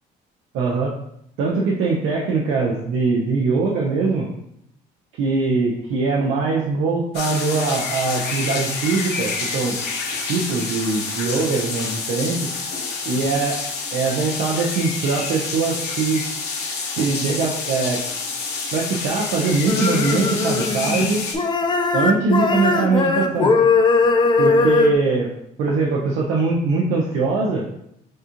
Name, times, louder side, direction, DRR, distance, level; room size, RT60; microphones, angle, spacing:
voice 1, 0.5-0.9 1.4-4.3 5.2-9.8 10.3-12.4 13.1-13.5 13.9-16.2 17.0-18.0 18.7-21.2 21.9-23.5 24.4-25.3 25.6-27.6, right 4 dB, 80° right, -3 dB, 0.7 m, -22 dB
sound 1, 7.1-21.4, left 4 dB, 75° left, 1.0 m, -28 dB
sound 2, 19.7-21.1 21.3-24.9, left 4 dB, 25° left, 0.5 m, -19 dB
6.3 x 2.4 x 2.9 m, 0.75 s
cardioid pair, 110°, 17 cm